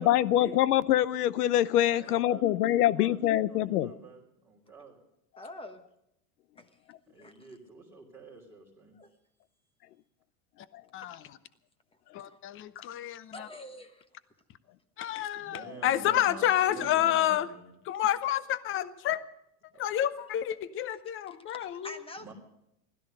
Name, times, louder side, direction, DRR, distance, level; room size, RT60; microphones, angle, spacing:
voice 1, 0.0-3.9, left 13 dB, 80° left, 20 dB, 0.8 m, -24 dB
voice 2, 1.9-5.0 7.1-8.9 15.3-17.7 22.2-22.3, right 3 dB, 5° right, -7 dB, 3.2 m, -49 dB
voice 3, 5.4-5.8 6.6-6.7 7.2-7.5 8.9-9.1 11.0-11.1 12.3-12.4 12.8-12.9 13.3-14.1 16.7-16.9 21.5-22.3, left 2 dB, 10° left, 10 dB, 1.2 m, -46 dB
voice 4, 12.1-13.5 15.0-17.5 17.9-19.2 19.8-22.0, left 12 dB, 25° left, 16 dB, 0.8 m, -29 dB
16.0 x 13.0 x 6.6 m, 0.81 s
supercardioid pair, 125°, 46 cm